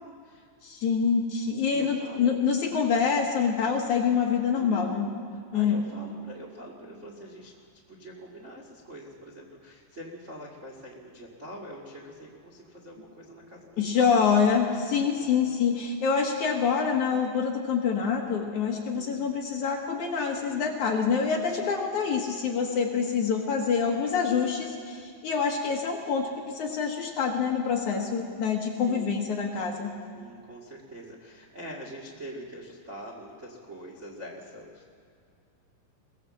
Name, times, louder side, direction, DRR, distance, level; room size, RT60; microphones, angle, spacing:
voice 1, 0.0-0.5 1.7-2.3 4.5-7.6 7.9-14.3 15.2-15.6 18.9-19.3 28.9-29.2 30.1-34.9, equal, 60° right, -1 dB, 0.7 m, -44 dB
voice 2, 0.6-5.1 5.5-5.8 13.8-29.9, left 6 dB, 60° left, 1 dB, 2.2 m, -26 dB
21.5 x 17.5 x 7.6 m, 2.3 s
omnidirectional pair, 5.0 m